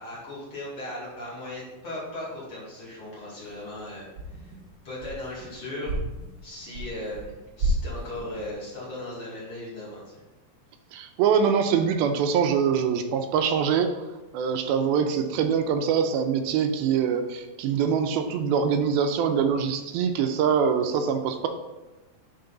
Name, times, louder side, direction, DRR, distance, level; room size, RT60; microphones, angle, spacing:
voice 1, 0.0-4.5 4.8-5.9 6.4-10.0, left 1 dB, 40° left, -7 dB, 2.8 m, -37 dB
sound 1, 3.4-3.8 4.1-5.5 5.8-7.3 7.6-8.5, right 1 dB, 45° right, 1.4 m, -32 dB
voice 2, 10.9-14.0 14.3-21.5, right 7 dB, 85° right, 6 dB, 2.5 m, -24 dB
10.5 x 4.5 x 3.9 m, 1.1 s
omnidirectional pair, 4.2 m